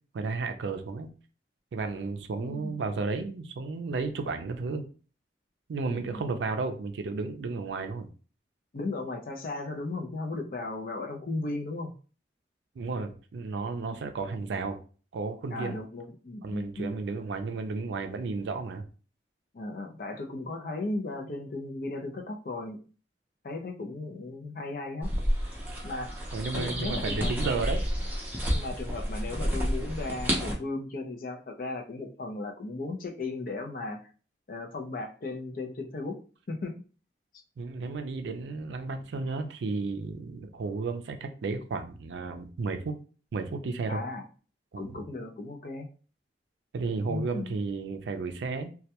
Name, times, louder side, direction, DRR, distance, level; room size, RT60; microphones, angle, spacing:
voice 1, 0.1-1.1 1.7-4.9 5.7-8.1 12.8-14.8 15.1-15.8 16.4-18.9 26.3-27.8 37.6-43.0 43.3-44.0 44.7-45.0 46.7-48.7, right 4 dB, 80° right, 7 dB, 0.4 m, -33 dB
voice 2, 2.4-2.8 6.0-6.2 8.7-11.9 15.5-17.0 19.5-22.8 23.4-25.1 25.8-26.1 26.5-27.5 28.5-34.0 34.5-36.2 36.5-36.7 43.9-44.2 44.8-45.9 47.1-47.5, left 2 dB, 50° left, 3 dB, 0.4 m, -36 dB
sound 1, 25.0-30.5, equal, 10° right, 0.5 m, -30 dB
2.2 x 2.1 x 2.7 m, 0.38 s
head